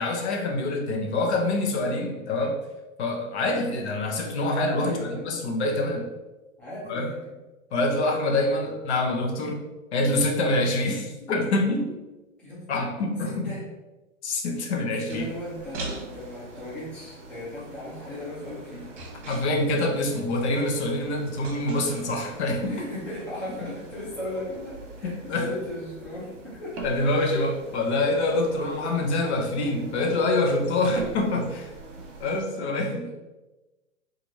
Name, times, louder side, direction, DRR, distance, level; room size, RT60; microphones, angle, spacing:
voice 1, 0.0-2.6 3.0-6.1 6.9-7.1 7.7-9.6 9.9-12.0 12.7-13.5 14.2-15.3 19.3-22.9 25.0-25.5 26.8-31.7 32.2-33.1, left 2 dB, 50° left, 2 dB, 0.7 m, -26 dB
voice 2, 4.8-5.2 6.6-7.3 12.4-13.6 15.0-18.9 22.7-26.7 32.2-33.1, left 1 dB, 5° left, -11 dB, 0.5 m, -37 dB
sound 1, 15.1-32.4, right 3 dB, 55° right, 1.0 m, -42 dB
3.0 x 2.5 x 3.9 m, 1.1 s
hypercardioid pair, 140°, 42 cm